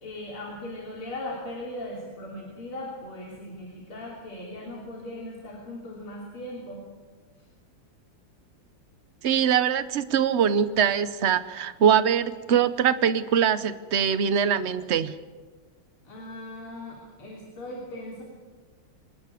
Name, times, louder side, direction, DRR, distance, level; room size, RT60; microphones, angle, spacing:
voice 1, 0.0-6.8 16.1-18.2, left 1 dB, 85° left, -2 dB, 4.0 m, -38 dB
voice 2, 9.2-15.1, right 8 dB, 60° right, 13 dB, 0.7 m, -23 dB
26.0 x 11.5 x 9.9 m, 1.4 s
omnidirectional pair, 2.3 m